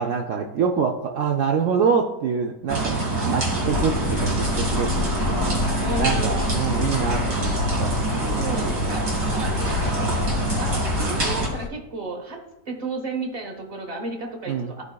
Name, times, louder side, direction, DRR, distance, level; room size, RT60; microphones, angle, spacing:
voice 1, 0.0-7.9 8.2-9.0 14.5-14.7, right 6 dB, 65° right, 1 dB, 0.9 m, -26 dB
sound 1, 2.7-11.5, right 2 dB, 85° right, 2.3 m, -25 dB
sound 2, 3.6-11.7, left 7 dB, 75° left, 1.0 m, -30 dB
voice 2, 5.8-6.4 8.3-10.1 10.6-12.4 12.6-14.9, right 3 dB, 30° right, 3 dB, 1.1 m, -33 dB
13.5 x 4.7 x 2.3 m, 0.92 s
omnidirectional pair, 1.5 m